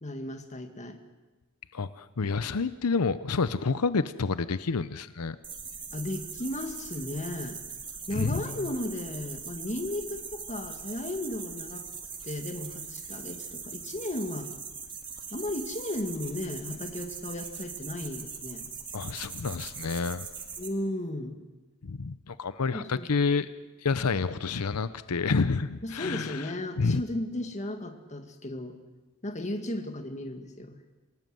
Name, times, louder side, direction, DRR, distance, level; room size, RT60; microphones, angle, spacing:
voice 1, 0.0-1.0 5.9-7.6 8.1-11.9 12.2-14.6 15.3-18.7 20.6-21.4 22.7-23.2 25.8-28.8 29.2-30.8, left 1 dB, 30° left, 6 dB, 2.0 m, -35 dB
voice 2, 1.7-5.4 8.1-8.4 18.9-20.3 21.8-23.5 23.8-26.5 26.8-27.0, left 4 dB, 90° left, 14 dB, 0.7 m, -29 dB
sound 1, 5.4-20.7, right 5 dB, 20° right, 2.2 m, -41 dB
27.5 x 18.0 x 7.8 m, 1.2 s
head